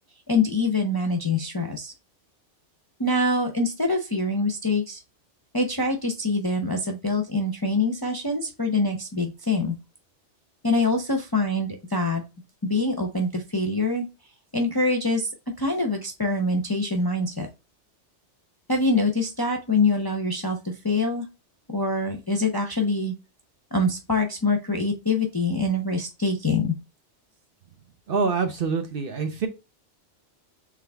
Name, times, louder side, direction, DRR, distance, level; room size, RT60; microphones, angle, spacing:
voice 1, 0.3-1.9 3.0-5.0 5.5-9.8 10.6-12.2 12.6-14.0 14.5-15.3 15.6-17.5 18.7-21.3 21.7-23.1 23.7-26.7, left 2 dB, 25° left, 2 dB, 0.5 m, -24 dB
voice 2, 28.1-29.5, right 4 dB, 55° right, 6 dB, 0.9 m, -25 dB
3.8 x 3.2 x 3.4 m, 0.27 s
omnidirectional pair, 1.2 m